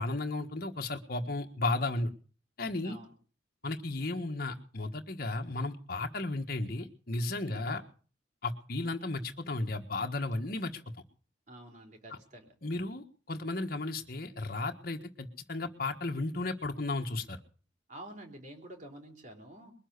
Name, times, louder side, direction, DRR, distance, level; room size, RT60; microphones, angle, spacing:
voice 1, 0.0-2.1 2.6-3.0 3.6-7.8 8.4-10.8 12.1-12.2 12.6-17.4, left 2 dB, 50° left, 4 dB, 1.5 m, -34 dB
voice 2, 2.8-3.1 7.4-7.8 11.5-12.5 17.9-19.7, right 1 dB, 40° right, 2 dB, 3.6 m, -49 dB
21.5 x 7.3 x 8.3 m, 0.43 s
head